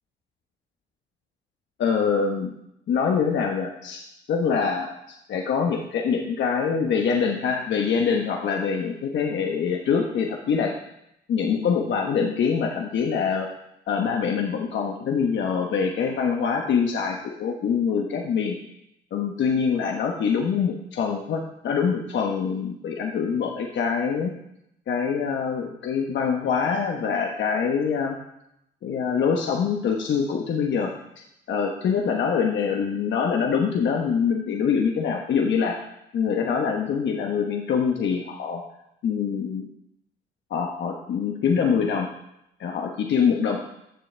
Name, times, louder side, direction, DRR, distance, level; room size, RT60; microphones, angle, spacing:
voice 1, 1.8-2.6 2.9-4.0 4.3-10.7 11.3-13.5 13.9-18.6 19.1-24.3 24.9-28.2 28.8-30.9 31.5-35.8 36.1-38.6 39.0-39.7 40.5-42.1 42.6-43.6, left 6 dB, 65° left, 1 dB, 1.1 m, -24 dB
14.5 x 6.9 x 3.4 m, 0.81 s
cardioid pair, 90°, 20 cm